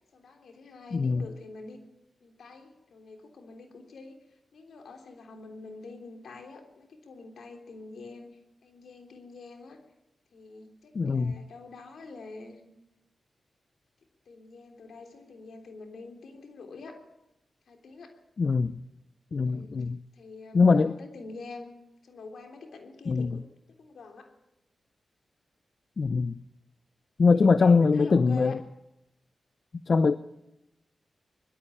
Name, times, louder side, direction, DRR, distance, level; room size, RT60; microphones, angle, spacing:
voice 1, 0.0-1.8 2.2-4.2 4.5-8.3 8.6-9.8 10.3-12.6 14.2-17.0 17.7-18.2 19.5-19.8 20.1-21.7 22.0-23.4 23.7-24.3 27.3-28.6, left 3 dB, 80° left, 4 dB, 3.3 m, -46 dB
voice 2, 0.9-1.2 10.9-11.3 18.4-18.7 19.3-20.0 20.5-21.0 23.1-23.3 26.0-26.4 27.2-28.6 29.9-30.2, left 4 dB, 60° left, 13 dB, 0.7 m, -22 dB
21.5 x 13.0 x 9.9 m, 0.88 s
cardioid pair, 50°, 0 cm